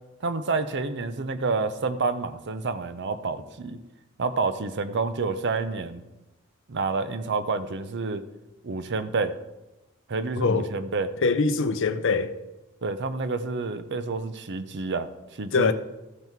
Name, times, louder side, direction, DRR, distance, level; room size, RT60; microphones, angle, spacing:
voice 1, 0.2-3.8 4.2-6.0 6.7-8.2 8.6-9.3 10.1-11.1 12.8-15.7, right 4 dB, 55° right, 0.7 m, -29 dB
voice 2, 10.4-10.7 11.2-12.3 15.5-15.7, left 4 dB, 60° left, 0.6 m, -23 dB
13.5 x 5.7 x 4.6 m
head